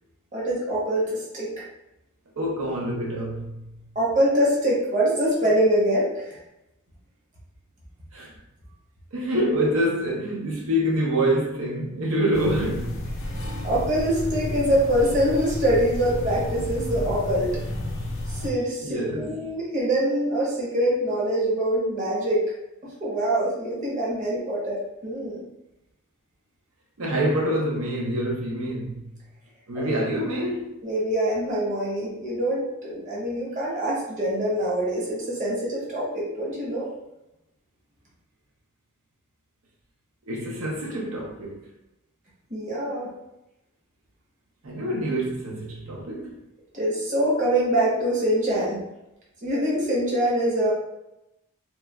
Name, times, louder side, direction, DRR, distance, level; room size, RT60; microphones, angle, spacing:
voice 1, 0.3-1.5 3.9-6.4 13.6-17.5 18.3-22.4 22.8-25.4 29.7-29.8 30.8-36.9 42.5-43.1 46.7-48.8 49.4-50.7, right 1 dB, 35° right, -5 dB, 0.8 m, -24 dB
voice 2, 2.4-3.7 8.1-8.4 9.1-13.1 18.8-19.4 27.0-29.1 29.7-30.8 40.2-41.6 44.6-46.4, right 1 dB, 85° right, -3 dB, 0.6 m, -26 dB
sound 1, 12.3-18.5, left 1 dB, 65° left, 0.5 m, -31 dB
3.0 x 2.2 x 2.2 m, 0.91 s
head